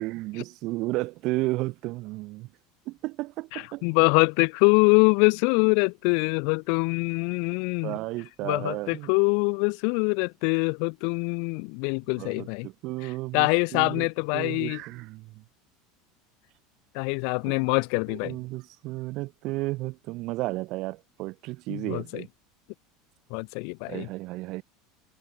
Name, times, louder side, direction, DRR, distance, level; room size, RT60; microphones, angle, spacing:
voice 1, 0.0-2.5 2.9-3.9 7.8-9.1 12.2-14.1 14.3-15.4 17.4-17.5 18.1-22.3 23.9-24.6, right 20 dB, 55° right, 2.3 m, -33 dB
voice 2, 3.5-8.0 8.4-12.7 13.3-14.8 16.9-18.4 21.7-22.2 23.3-24.1, left 40 dB or more, 65° left, 0.7 m, -24 dB
hypercardioid pair, 80°, 0 cm